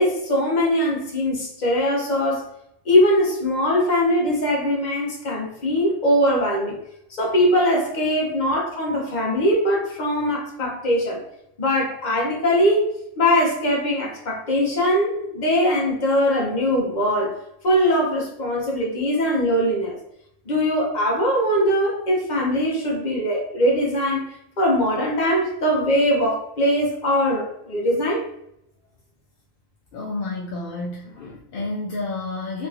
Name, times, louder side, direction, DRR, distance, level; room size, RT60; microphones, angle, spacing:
voice 1, 0.0-2.5 2.8-6.8 7.1-11.2 11.6-17.4 17.6-20.0 20.5-24.3 24.6-28.2, equal, 40° left, -2 dB, 0.9 m, -21 dB
voice 2, 29.9-32.7, left 2 dB, 65° left, -3 dB, 0.5 m, -30 dB
3.1 x 2.9 x 2.4 m, 0.78 s
omnidirectional pair, 1.3 m